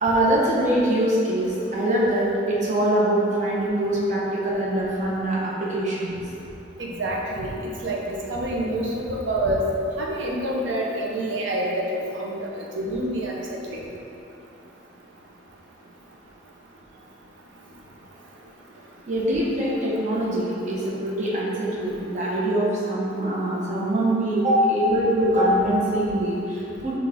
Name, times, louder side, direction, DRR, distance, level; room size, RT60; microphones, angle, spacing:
voice 1, 0.0-6.2 19.1-27.0, right 1 dB, 40° right, -6 dB, 0.8 m, -23 dB
voice 2, 6.8-7.5 7.8-9.7 10.0-13.3 13.7-13.8, right 1 dB, 80° right, -2 dB, 0.5 m, -27 dB
5.9 x 2.4 x 3.4 m, 2.8 s
head